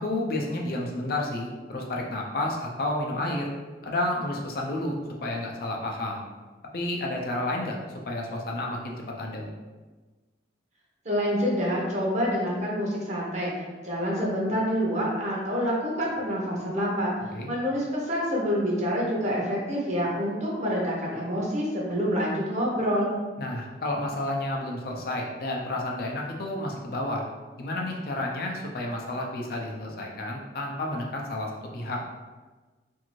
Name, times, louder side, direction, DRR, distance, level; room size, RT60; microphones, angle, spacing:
voice 1, 0.0-3.5 3.8-6.2 6.7-9.5 17.3-17.5 23.4-27.2 27.6-32.0, left 1 dB, 55° left, 0 dB, 0.5 m, -31 dB
voice 2, 11.0-17.1 17.4-23.2, equal, 40° right, -3 dB, 0.7 m, -27 dB
2.6 x 2.5 x 3.0 m, 1.3 s
head